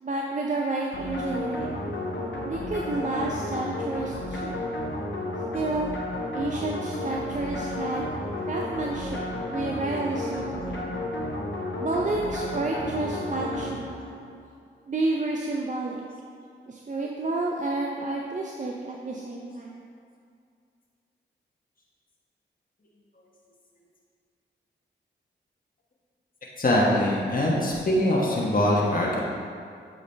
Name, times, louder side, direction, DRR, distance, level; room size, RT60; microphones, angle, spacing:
voice 1, 0.0-1.8 2.4-4.7 5.5-5.9 6.3-8.1 8.5-10.9 11.8-14.0 14.9-16.0 16.7-19.8, right 2 dB, 35° right, -1 dB, 0.6 m, -30 dB
sound 1, 0.9-14.2, left 1 dB, 65° left, 1.2 m, -32 dB
voice 2, 26.6-29.2, left 1 dB, 45° left, -4 dB, 1.3 m, -23 dB
8.3 x 3.9 x 3.4 m, 2.3 s
supercardioid pair, 40°, 21 cm